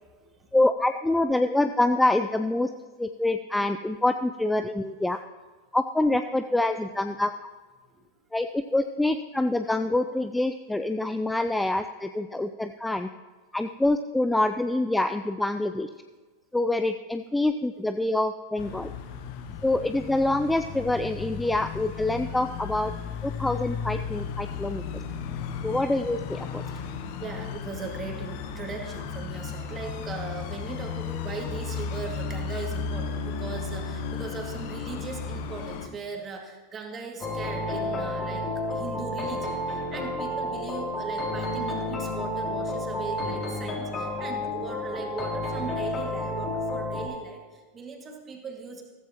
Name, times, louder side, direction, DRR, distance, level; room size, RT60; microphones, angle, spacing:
voice 1, 0.5-2.7 3.0-5.2 5.7-7.3 8.3-13.1 13.5-15.9 16.5-18.9 19.6-22.9 23.2-25.0 25.6-26.6, left 2 dB, 5° left, 9 dB, 0.4 m, -26 dB
sound 1, 18.6-35.9, left 6 dB, 45° left, 1.0 m, -35 dB
voice 2, 27.2-48.8, right 4 dB, 20° right, 2 dB, 2.1 m, -39 dB
sound 2, 37.2-47.1, left 1 dB, 30° left, 3.0 m, -31 dB
14.5 x 14.5 x 3.0 m, 1.4 s
figure-of-eight pair, 90°, 0 cm